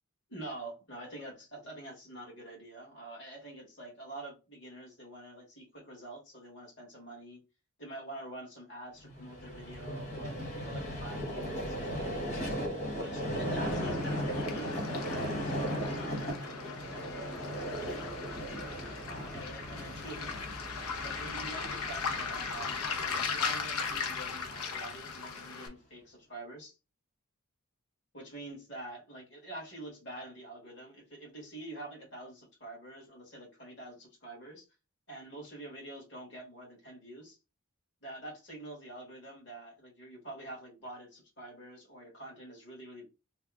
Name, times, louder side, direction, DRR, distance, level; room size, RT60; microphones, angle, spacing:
voice 1, 0.3-7.4 7.8-12.4 12.9-18.1 19.1-20.3 20.8-26.8 28.1-34.6 35.1-37.4 38.0-43.1, right 1 dB, 50° left, 1.8 m, -46 dB
Vehicle, 9.0-25.4, equal, 30° left, 1.3 m, -37 dB
Waves surf, 13.7-25.7, left 5 dB, 85° left, 0.7 m, -38 dB
3.3 x 2.1 x 3.5 m
head